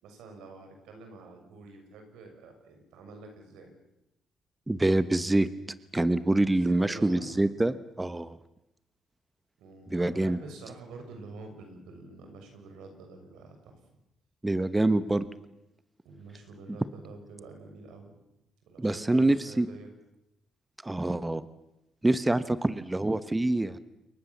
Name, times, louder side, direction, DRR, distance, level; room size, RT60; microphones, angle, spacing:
voice 1, 0.0-3.7 6.5-7.4 9.6-13.8 16.0-18.1 18.7-19.9, right 3 dB, 90° right, 5 dB, 6.5 m, -47 dB
voice 2, 4.7-5.5 5.9-8.4 9.9-10.4 14.4-15.2 18.8-19.7 20.8-21.4 22.0-23.8, right 2 dB, 15° right, 13 dB, 1.1 m, -25 dB
28.5 x 22.5 x 7.4 m, 0.89 s
cardioid pair, 90°, 0 cm